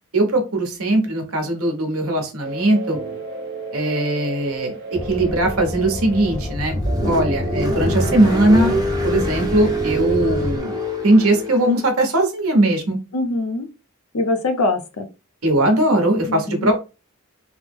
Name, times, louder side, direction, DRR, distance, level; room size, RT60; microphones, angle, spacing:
voice 1, 0.1-3.0 3.7-8.7 9.0-10.8 11.0-13.0 15.4-16.8, right 1 dB, 75° right, 3 dB, 1.0 m, -19 dB
sound 1, 2.4-8.7, right 2 dB, 55° right, 0.8 m, -33 dB
sound 2, 4.9-10.6, left 1 dB, 20° left, 0.3 m, -28 dB
Car, 6.4-11.8, right 1 dB, 20° right, 0.6 m, -25 dB
voice 2, 13.1-13.7 14.1-15.1 16.3-16.7, left 2 dB, 80° left, 8 dB, 0.6 m, -23 dB
3.2 x 2.0 x 3.5 m, 0.30 s
head